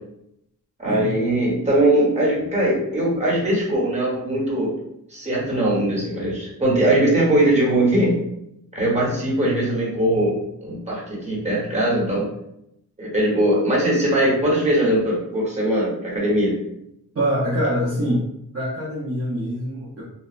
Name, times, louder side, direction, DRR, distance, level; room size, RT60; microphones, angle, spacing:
voice 1, 0.8-4.7 5.1-8.1 8.7-12.2 13.0-16.6, right 1 dB, 20° right, -6 dB, 1.0 m, -20 dB
voice 2, 17.1-18.3 18.5-20.0, equal, 40° right, -8 dB, 0.7 m, -24 dB
3.0 x 2.1 x 2.4 m, 0.80 s
wide cardioid pair, 120°, 34 cm